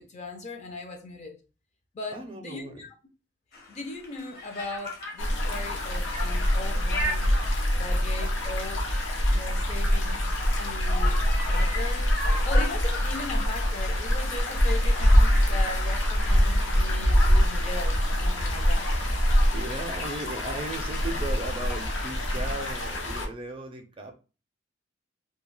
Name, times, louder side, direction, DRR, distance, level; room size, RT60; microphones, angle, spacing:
voice 1, 0.0-1.4 1.9-2.9 3.7-7.4 7.8-8.9 9.3-10.2 10.5-12.1 12.4-18.9, left 2 dB, 35° left, 0.5 m, -38 dB
voice 2, 2.1-2.8 19.5-24.1, right 2 dB, 30° right, 0.4 m, -36 dB
Conversation, 3.5-23.1, left 1 dB, 55° left, 0.9 m, -39 dB
sound 1, 5.2-23.3, equal, 75° left, 0.6 m, -24 dB
2.3 x 2.2 x 3.1 m
head